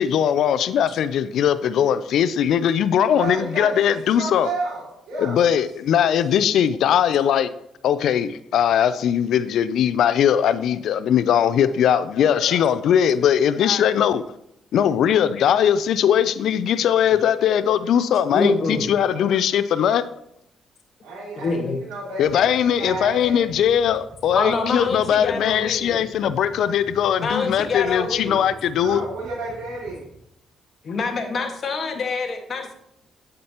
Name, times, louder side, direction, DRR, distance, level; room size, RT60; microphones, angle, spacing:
voice 1, 0.0-4.5 5.2-7.5 7.8-14.2 14.7-20.0 22.2-29.0, left 9 dB, 75° left, 14 dB, 0.4 m, -20 dB
voice 2, 3.1-5.4 12.4-12.6 19.1-19.3 21.0-21.6 21.9-22.5 22.8-23.4 28.8-30.1, right 2 dB, 90° right, -7 dB, 3.4 m, -32 dB
voice 3, 18.3-18.9 21.4-21.8 24.3-26.0 27.2-28.5 30.8-32.7, left 4 dB, 50° left, 3 dB, 1.6 m, -25 dB
sound 1, 22.2-30.2, right 2 dB, 65° right, 1.4 m, -45 dB
8.5 x 8.0 x 2.9 m, 0.75 s
cardioid pair, 90°, 0 cm